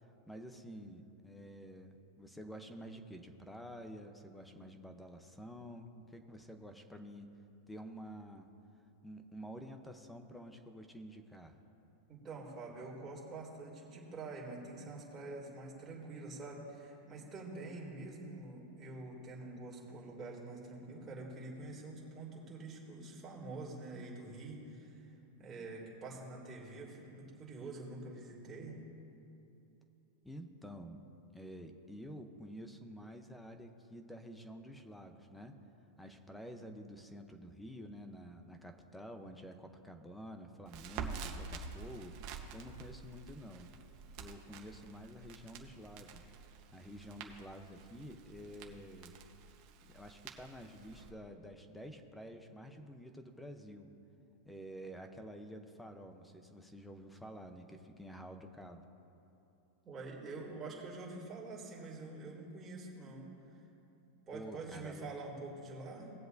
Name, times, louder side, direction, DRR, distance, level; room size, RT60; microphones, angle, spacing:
voice 1, 0.3-7.3 7.7-8.5 9.0-11.6 30.2-31.0 31.3-35.6 36.0-42.2 42.5-43.7 44.2-46.3 46.7-49.2 49.8-53.9 54.5-58.8 64.3-65.1, equal, 5° left, 6 dB, 0.8 m, -50 dB
voice 2, 12.1-25.1 25.4-28.8 59.8-63.3 64.3-66.1, right 3 dB, 20° right, -3 dB, 2.6 m, -46 dB
Crackle, 40.7-51.1, right 5 dB, 50° right, 1.1 m, -48 dB
19.0 x 7.6 x 2.7 m, 2.8 s
supercardioid pair, 135°, 0 cm